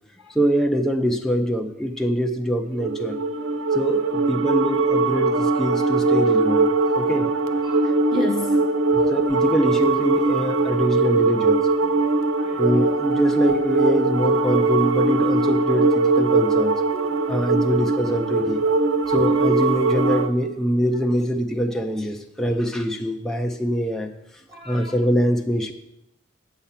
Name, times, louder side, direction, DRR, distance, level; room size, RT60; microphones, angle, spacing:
voice 1, 0.3-3.2 3.7-6.7 7.0-7.3 8.9-11.6 12.6-16.8 17.3-18.6 19.1-24.1 24.7-25.7, equal, ahead, 2 dB, 0.6 m, -24 dB
sound 1, 2.7-20.3, right 3 dB, 80° right, 0.6 m, -21 dB
voice 2, 7.6-8.6 12.4-12.6 16.9-17.3 24.5-24.9, left 1 dB, 20° right, -3 dB, 1.0 m, -31 dB
8.6 x 7.8 x 5.8 m, 0.82 s
head